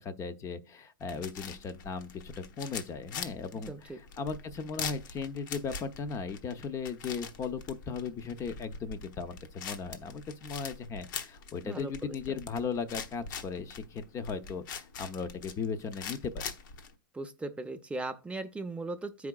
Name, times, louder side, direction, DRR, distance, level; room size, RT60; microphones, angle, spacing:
voice 1, 0.0-16.5, left 5 dB, 25° left, 0.7 m, -37 dB
sound 1, 1.0-16.9, left 6 dB, 70° left, 1.0 m, -43 dB
voice 2, 3.5-4.0 11.6-12.4 17.1-19.3, right 2 dB, 10° right, 0.6 m, -38 dB
14.0 x 4.8 x 2.3 m
hypercardioid pair, 120°, 11 cm